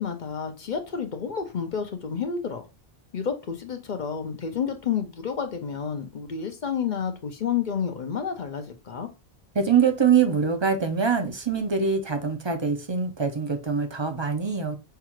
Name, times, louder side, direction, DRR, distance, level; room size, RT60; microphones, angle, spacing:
voice 1, 0.0-2.6 3.1-9.1, left 7 dB, 55° left, 0.7 m, -30 dB
voice 2, 9.5-14.8, right 6 dB, 35° right, 0.5 m, -24 dB
5.7 x 2.4 x 3.0 m
omnidirectional pair, 1.1 m